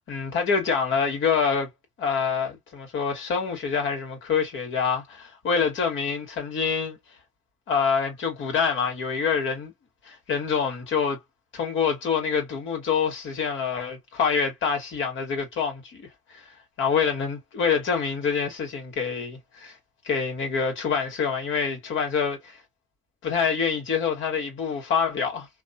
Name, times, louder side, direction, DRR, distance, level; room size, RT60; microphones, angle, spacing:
voice 1, 0.1-1.7 2.0-7.0 7.7-9.7 10.1-11.2 11.5-16.5 16.8-19.8 20.0-22.6 23.2-25.5, left 6 dB, 75° left, 1.7 m, -26 dB
3.0 x 2.2 x 2.7 m
cardioid pair, 90°, 20 cm